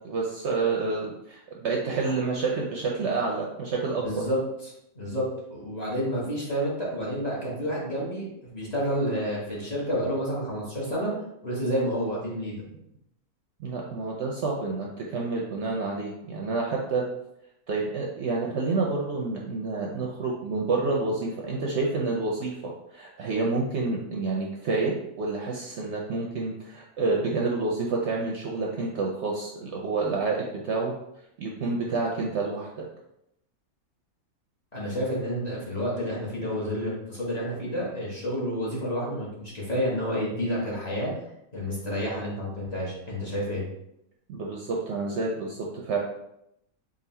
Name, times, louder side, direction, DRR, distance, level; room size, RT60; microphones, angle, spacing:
voice 1, 0.0-4.2 13.6-17.0 17.7-30.9 31.4-32.8 44.3-46.0, right 3 dB, 65° right, -1 dB, 0.7 m, -29 dB
voice 2, 4.0-11.1 11.4-12.6 34.7-41.1 41.5-43.6, equal, 30° left, -6 dB, 1.1 m, -30 dB
3.8 x 2.4 x 4.2 m, 0.81 s
omnidirectional pair, 1.5 m